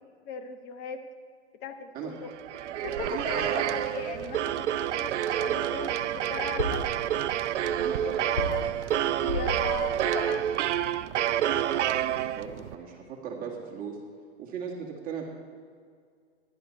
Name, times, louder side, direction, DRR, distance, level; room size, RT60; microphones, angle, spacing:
voice 1, 0.3-1.0 1.6-2.3 2.8-7.0 7.6-8.6 9.0-10.5, left 5 dB, 30° left, 7 dB, 1.0 m, -39 dB
sound 1, 2.3-12.7, right 11 dB, 75° right, 0.6 m, -28 dB
voice 2, 3.1-3.7 7.7-8.3 11.4-14.0 14.4-15.2, right 7 dB, 25° right, -2 dB, 2.2 m, -38 dB
sound 2, 6.3-11.1 11.5-11.6, left 2 dB, 75° left, 2.8 m, -37 dB
15.0 x 11.5 x 4.5 m, 2.1 s
hypercardioid pair, 135°, 35 cm